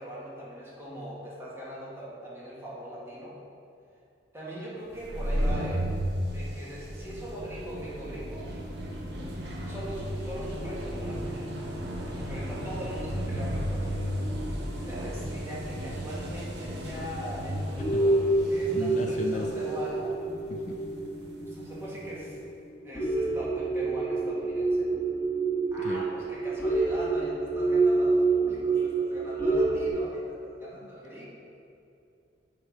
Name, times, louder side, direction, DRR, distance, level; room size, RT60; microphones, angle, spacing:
voice 1, 0.0-3.3 4.3-5.9 6.3-8.5 9.6-11.5 12.1-14.2 14.5-20.2 21.4-22.4 22.8-24.9 25.7-31.3, equal, 15° right, -7 dB, 2.0 m, -40 dB
sound 1, 4.9-22.3, equal, 60° right, 1.1 m, -34 dB
sound 2, 10.6-14.5 14.9-15.0 16.1-16.2 16.7-16.8 17.3-17.5 17.8-29.9, right 3 dB, 10° left, 1.3 m, -28 dB
voice 2, 18.7-19.5 20.5-20.8 25.8-26.0, left 3 dB, 40° left, 3 dB, 0.4 m, -35 dB
8.1 x 5.0 x 5.5 m, 2.6 s
head